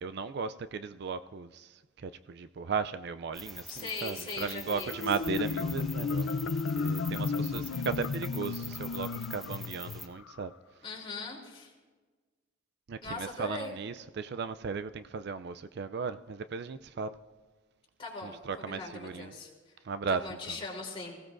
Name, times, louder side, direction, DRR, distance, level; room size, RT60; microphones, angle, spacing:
voice 1, 0.0-6.3 6.8-10.5 12.9-17.2 18.2-19.3 19.8-20.2 20.5-20.6, right 5 dB, 55° right, 12 dB, 0.4 m, -36 dB
sound 1, 3.3-10.1, left 1 dB, ahead, 1.0 m, -45 dB
voice 2, 3.7-4.9 10.8-11.7 13.0-13.7 18.0-19.5 20.1-21.2, left 3 dB, 25° left, -2 dB, 3.5 m, -40 dB
Marimba xylophone, 4.9-10.4, left 4 dB, 90° left, 0.5 m, -33 dB
24.5 x 16.5 x 2.6 m, 1.3 s
head